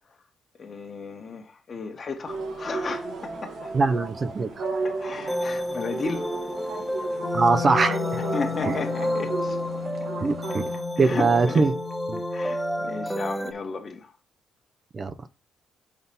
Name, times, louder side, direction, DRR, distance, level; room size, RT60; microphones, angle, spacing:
voice 1, 0.6-3.7 4.8-6.3 8.3-9.6 10.0-10.1 11.0-11.7 12.3-14.1, left 4 dB, 40° left, 1.4 m, -34 dB
sound 1, 2.2-10.8, right 4 dB, 70° right, 1.5 m, -35 dB
sound 2, 2.6-13.5, equal, ahead, 0.7 m, -32 dB
voice 2, 3.7-4.6 7.3-8.2 8.7-8.8 10.2-10.7 11.0-11.7 12.1-12.2 14.9-15.1, right 4 dB, 35° right, 0.6 m, -22 dB
Wind instrument woodwind instrument, 7.1-13.3, left 9 dB, 60° left, 0.3 m, -35 dB
5.8 x 4.0 x 5.5 m
cardioid pair, 90°, 0 cm